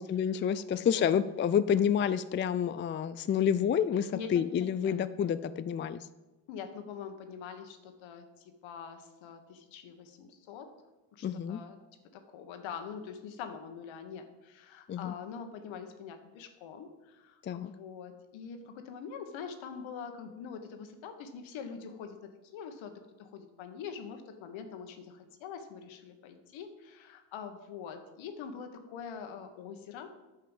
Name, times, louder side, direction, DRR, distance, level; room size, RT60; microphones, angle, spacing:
voice 1, 0.0-6.1 11.2-11.6 14.9-15.1 17.4-17.7, left 8 dB, 25° left, 13 dB, 0.4 m, -29 dB
voice 2, 0.6-1.1 4.1-4.9 6.5-10.7 11.1-11.8 12.1-30.1, left 6 dB, 70° left, 7 dB, 1.6 m, -44 dB
9.9 x 5.6 x 7.3 m, 1.1 s
supercardioid pair, 75°, 49 cm